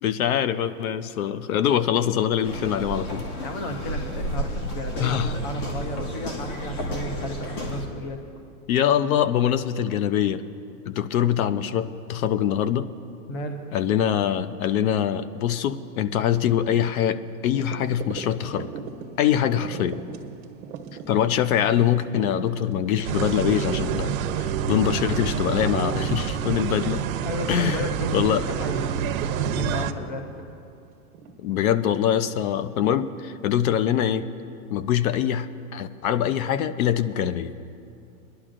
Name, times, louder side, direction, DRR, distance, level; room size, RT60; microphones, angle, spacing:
voice 1, 0.0-3.2 5.0-5.3 8.7-10.4 10.9-12.9 13.7-18.7 19.2-20.0 21.1-27.0 27.5-27.8 28.1-28.5 31.4-34.3 34.7-35.5 35.7-37.6, left 10 dB, 70° left, 13 dB, 0.7 m, -23 dB
sound 1, 2.4-7.9, equal, 85° left, 2.1 m, -32 dB
voice 2, 3.4-8.2 13.3-13.6 27.2-29.1 29.5-30.3, left 1 dB, 15° left, 5 dB, 0.3 m, -33 dB
sound 2, 17.5-33.2 33.7-33.8, right 6 dB, 45° right, 1.2 m, -41 dB
sound 3, 23.0-29.9, right 8 dB, 65° right, 0.8 m, -27 dB
24.0 x 11.0 x 2.5 m, 2.5 s
supercardioid pair, 145°, 44 cm